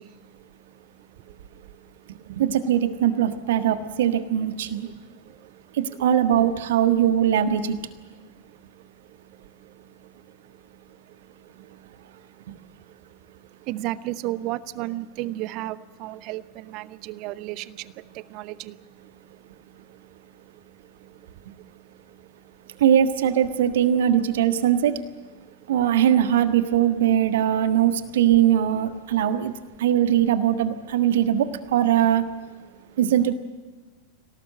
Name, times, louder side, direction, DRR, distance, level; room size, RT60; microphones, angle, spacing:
voice 1, 0.0-2.3 4.8-5.6 8.2-22.8 25.4-25.7 29.1-29.2 32.7-33.0, right 16 dB, 40° right, 17 dB, 0.8 m, -38 dB
voice 2, 2.3-4.9 5.7-7.8 22.8-25.0 25.7-29.5 29.8-32.3 33.0-33.3, right 10 dB, 55° right, 9 dB, 1.5 m, -21 dB
25.5 x 18.0 x 7.7 m, 1.3 s
figure-of-eight pair, 90°, 0 cm